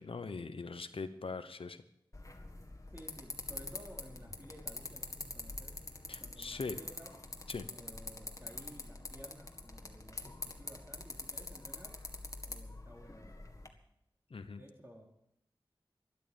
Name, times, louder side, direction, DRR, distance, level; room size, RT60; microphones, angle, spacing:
voice 1, 0.0-1.8 6.1-6.8 7.5-7.7 14.3-14.6, left 4 dB, 90° left, 10 dB, 0.9 m, -41 dB
sound 1, 2.1-13.7, left 2 dB, 35° left, 1.9 m, -45 dB
voice 2, 2.9-5.7 6.2-7.1 7.7-11.9 12.5-13.7 14.5-15.0, equal, 25° right, -1 dB, 4.3 m, -54 dB
12.5 x 12.0 x 7.1 m, 0.77 s
wide cardioid pair, 55°, 9 cm